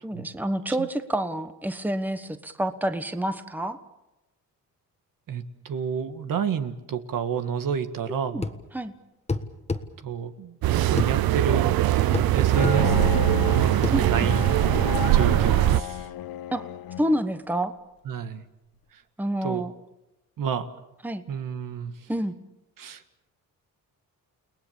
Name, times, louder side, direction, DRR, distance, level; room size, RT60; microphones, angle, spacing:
voice 1, 0.0-3.8 8.1-8.5 8.7-8.9 13.9-14.3 16.5-16.7 17.0-17.8 19.2-19.7 21.0-21.2 22.1-22.3, right 1 dB, 5° right, 10 dB, 1.2 m, -28 dB
voice 2, 5.3-8.5 10.0-11.7 11.9-14.5 15.1-16.1 18.0-18.4 18.9-19.0 19.4-19.6 20.4-20.7 21.3-22.1 22.8-23.0, right 7 dB, 65° right, 9 dB, 1.7 m, -30 dB
sound 1, 8.4-8.6 9.3-9.9 11.0-11.1 12.1-12.3 12.6-12.8 13.8-14.0, left 3 dB, 20° left, 1.4 m, -27 dB
sound 2, 10.6-15.8, right 14 dB, 90° right, 0.8 m, -21 dB
Bowed string instrument, 12.5-17.3, left 15 dB, 85° left, 0.9 m, -32 dB
30.0 x 19.5 x 7.3 m, 0.95 s
cardioid pair, 120°, 35 cm